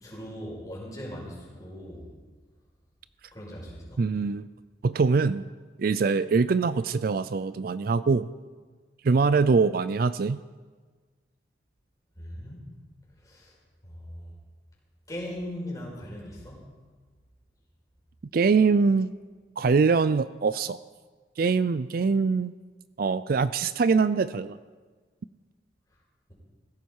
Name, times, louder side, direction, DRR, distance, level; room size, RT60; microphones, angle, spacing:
voice 1, 0.0-2.1 3.3-4.0 12.2-12.6 13.2-13.5 13.8-14.3 15.1-16.6, equal, 20° left, -4 dB, 5.1 m, -39 dB
voice 2, 4.0-4.5 4.8-5.4 5.8-8.3 9.0-10.4 18.3-19.1 19.6-20.8 21.4-22.5 23.0-24.6, right 4 dB, 55° right, 15 dB, 0.4 m, -23 dB
17.5 x 16.0 x 4.7 m, 1.4 s
head